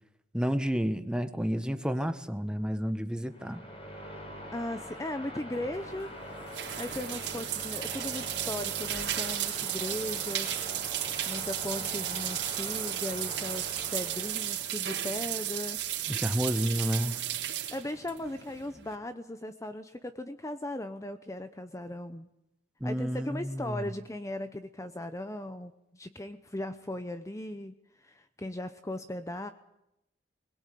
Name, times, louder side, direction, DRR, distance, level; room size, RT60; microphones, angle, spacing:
voice 1, 0.3-3.7 16.1-17.2 22.8-23.9, equal, 5° right, 1.3 m, -30 dB
sound 1, 3.3-14.8, equal, 35° left, 6.2 m, -43 dB
voice 2, 4.5-6.1 6.8-10.6 11.2-13.7 13.9-15.8 16.1-16.2 17.7-22.3 22.8-29.5, left 1 dB, 20° left, 0.9 m, -38 dB
sound 2, 5.7-18.9, right 11 dB, 85° right, 3.5 m, -34 dB
21.5 x 21.0 x 8.5 m
head